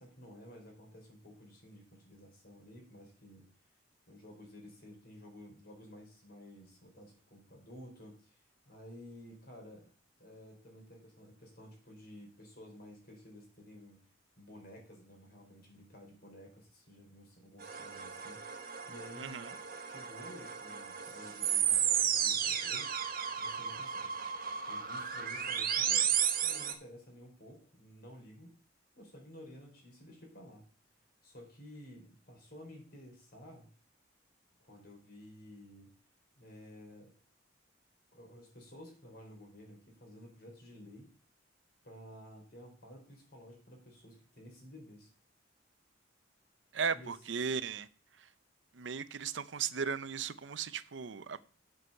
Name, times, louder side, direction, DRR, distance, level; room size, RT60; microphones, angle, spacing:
voice 1, 0.0-3.5 4.1-9.9 10.2-14.0 14.4-19.4 19.8-22.9 23.4-24.1 24.7-28.5 28.9-30.6 31.2-33.7 34.6-35.9 36.4-37.1 38.1-41.1 41.8-45.1 46.9-47.1, equal, 55° left, 4.3 m, -53 dB
sound 1, 17.6-26.7, right 8 dB, 50° right, 1.2 m, -33 dB
voice 2, 19.2-19.5 46.7-47.9 48.2-48.3 48.7-51.4, right 6 dB, 70° right, 0.6 m, -36 dB
7.7 x 6.2 x 6.7 m
head